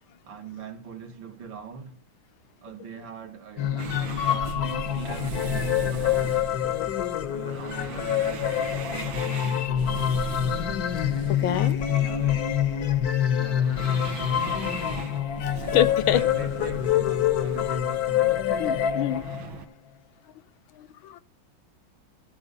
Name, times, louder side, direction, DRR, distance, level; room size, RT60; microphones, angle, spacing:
voice 1, 0.2-2.0 2.6-6.4 7.3-8.6 8.8-10.3 11.3-12.5 13.3-14.9 16.1-19.3, right 5 dB, 70° right, 2.1 m, -41 dB
sound 1, 3.6-19.6, left 10 dB, 60° left, 1.1 m, -26 dB
sound 2, 3.8-19.7, right 7 dB, 85° right, 1.8 m, -39 dB
voice 2, 11.3-11.8 15.7-16.3 18.6-19.2 20.8-21.2, left 12 dB, 80° left, 1.5 m, -25 dB
14.0 x 4.7 x 6.6 m
omnidirectional pair, 2.2 m